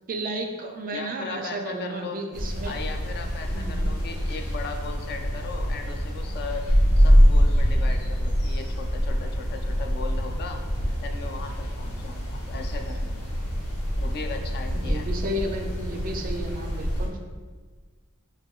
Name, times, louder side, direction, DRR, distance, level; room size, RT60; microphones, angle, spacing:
voice 1, 0.1-2.8 3.5-3.9 14.7-17.2, right 1 dB, 40° right, 4 dB, 0.4 m, -33 dB
voice 2, 0.9-2.2 2.6-6.7 7.0-10.6 11.0-13.1 14.0-15.1, left 4 dB, 45° left, 4 dB, 0.3 m, -37 dB
sound 1, 2.3-17.1, equal, 90° left, 0.9 m, -24 dB
4.6 x 2.9 x 2.3 m, 1.5 s
head